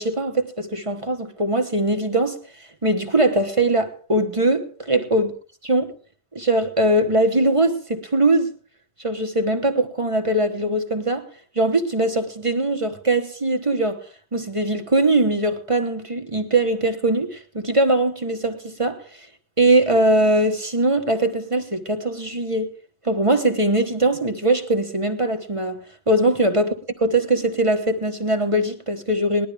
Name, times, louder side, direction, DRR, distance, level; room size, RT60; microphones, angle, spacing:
voice 1, 0.0-5.3 5.7-5.9 6.3-8.5 9.0-11.3 11.5-14.0 14.3-19.3 19.6-22.7 23.0-25.8 26.1-26.7 27.0-29.5, right 1 dB, 30° right, 1.2 m, -21 dB
19.5 x 12.0 x 3.4 m
omnidirectional pair, 1.1 m